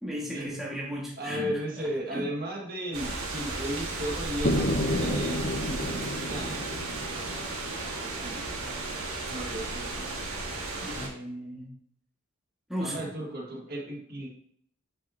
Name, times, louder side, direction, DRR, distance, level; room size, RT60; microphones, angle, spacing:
voice 1, 0.0-2.3 10.8-11.7 12.7-13.0, equal, ahead, -5 dB, 1.7 m, -36 dB
voice 2, 1.2-6.7 8.0-8.5 9.3-10.1 12.8-14.3, equal, 45° right, -2 dB, 1.7 m, -35 dB
sound 1, 2.9-11.1, right 2 dB, 75° right, 1.8 m, -34 dB
sound 2, 4.4-8.3, left 1 dB, 40° left, 0.7 m, -31 dB
9.3 x 5.6 x 2.8 m, 0.65 s
head